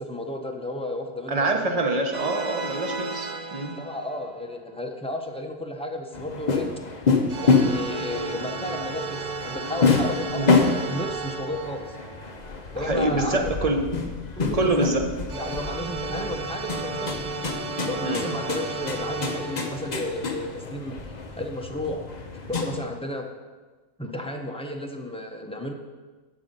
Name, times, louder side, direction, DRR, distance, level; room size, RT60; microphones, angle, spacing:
voice 1, 0.0-1.4 3.8-6.7 7.4-11.9 12.7-13.5 14.4-14.9 15.3-17.1 17.8-21.0 21.4-22.1 22.5-23.3 24.0-25.7, left 1 dB, 10° left, 2 dB, 0.4 m, -33 dB
voice 2, 1.3-3.8 10.4-10.5 12.8-13.8 14.5-15.1 18.0-18.2, right 2 dB, 30° right, 3 dB, 0.9 m, -25 dB
sound 1, 2.1-4.6 7.3-12.9 15.3-20.2, right 4 dB, 50° right, 0.5 m, -34 dB
sound 2, 6.1-22.8, left 4 dB, 40° left, 0.7 m, -27 dB
12.0 x 5.5 x 5.3 m, 1.3 s
omnidirectional pair, 1.6 m